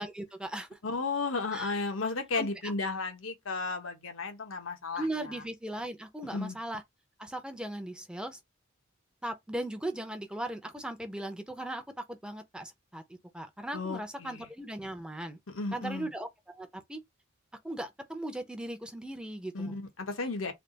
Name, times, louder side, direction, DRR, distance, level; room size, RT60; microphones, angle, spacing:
voice 1, 0.0-0.8 1.5-1.7 2.4-2.7 4.9-6.8 7.2-8.4 9.2-11.8 12.1-13.0 13.3-15.4 15.7-17.0 17.6-19.7, right 1 dB, 5° right, 0.6 m, -38 dB
voice 2, 0.8-5.4 6.3-6.6 13.7-14.5 15.5-16.1 19.5-20.5, left 3 dB, 85° left, 1.1 m, -34 dB
3.4 x 2.4 x 3.9 m
head